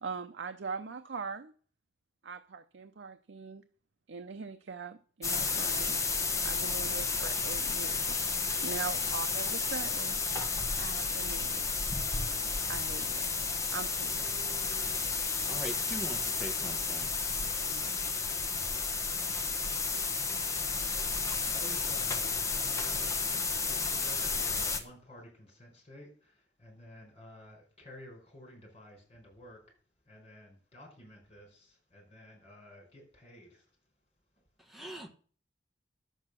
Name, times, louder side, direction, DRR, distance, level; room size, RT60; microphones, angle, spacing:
voice 1, 0.0-1.5 2.2-3.6 4.1-6.0 6.4-8.3 8.6-10.2 10.8-11.7 12.7-13.3 13.7-14.3 17.6-18.0, right 5 dB, 85° right, 8 dB, 0.6 m, -41 dB
sound 1, 5.2-24.8, left 4 dB, 15° left, 1.1 m, -32 dB
voice 2, 15.5-17.1 34.7-35.1, right 1 dB, ahead, 3 dB, 1.4 m, -41 dB
voice 3, 20.6-23.4 23.6-29.6 30.0-33.6, left 1 dB, 35° left, 1 dB, 4.9 m, -52 dB
10.5 x 7.8 x 6.2 m, 0.44 s
head